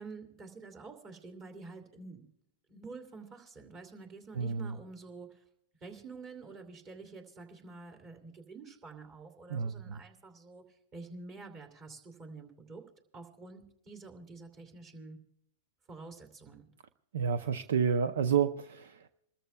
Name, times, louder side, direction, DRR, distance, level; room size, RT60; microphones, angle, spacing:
voice 1, 0.0-2.3 2.7-5.4 5.8-12.8 13.1-15.2 15.9-16.7, right 3 dB, 30° right, 5 dB, 2.6 m, -48 dB
voice 2, 4.4-4.8 9.5-10.0 17.1-19.1, right 7 dB, 75° right, 11 dB, 0.5 m, -30 dB
28.0 x 13.5 x 2.3 m, 0.78 s
hypercardioid pair, 115°, 0 cm